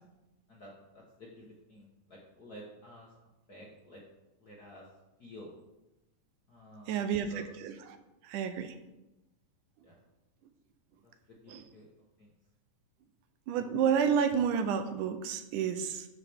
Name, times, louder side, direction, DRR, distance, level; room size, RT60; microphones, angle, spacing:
voice 1, 0.5-3.1 3.5-4.0 4.4-4.8 5.2-5.5 6.5-7.4 9.8-10.0 11.3-11.9 12.2-12.3, equal, 45° left, -4 dB, 1.3 m, -51 dB
voice 2, 6.9-7.8 8.2-8.8 11.5-11.7 13.5-16.1, right 7 dB, 80° right, 9 dB, 2.2 m, -30 dB
12.5 x 6.1 x 3.6 m, 0.97 s
omnidirectional pair, 3.6 m